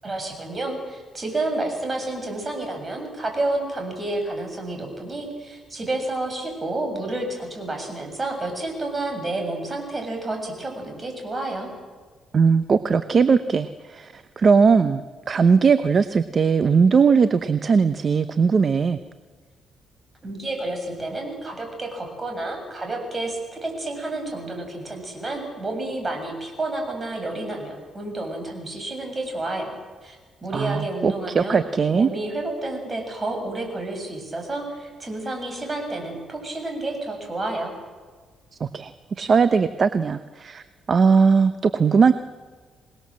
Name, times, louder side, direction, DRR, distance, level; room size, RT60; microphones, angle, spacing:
voice 1, 0.0-11.7 20.2-29.7 30.0-30.2 30.4-31.6 31.9-37.7, right 2 dB, 25° right, 4 dB, 7.4 m, -30 dB
voice 2, 12.3-19.0 30.5-32.1 38.6-38.9 39.2-40.6 40.9-42.1, right 5 dB, 45° right, 11 dB, 0.9 m, -19 dB
26.5 x 19.5 x 7.6 m, 1.5 s
cardioid pair, 90°, 0 cm